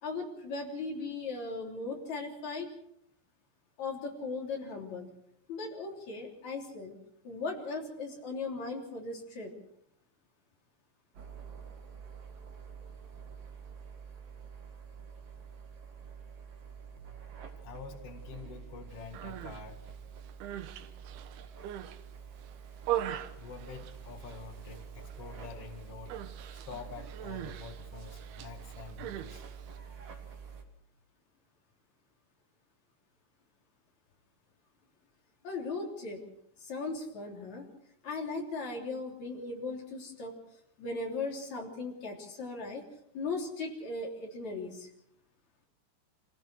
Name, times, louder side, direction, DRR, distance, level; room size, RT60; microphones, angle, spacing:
voice 1, 0.0-2.7 3.8-5.1 5.5-6.9 7.2-9.5 35.4-36.2 36.6-37.6 38.0-40.3 40.8-42.9 43.1-44.9, left 3 dB, 40° left, 1 dB, 4.2 m, -38 dB
sound 1, 11.1-30.6, right 7 dB, 50° right, 2.0 m, -47 dB
voice 2, 17.6-19.8 23.4-26.2 26.6-29.4, left 6 dB, 75° left, 5 dB, 1.3 m, -47 dB
Human voice, 19.0-19.6 20.2-22.0 22.4-24.4 24.7-25.1 25.4-25.6 26.1-29.8, right 12 dB, 75° right, 2.4 m, -40 dB
26.5 x 17.0 x 6.3 m, 0.74 s
omnidirectional pair, 5.9 m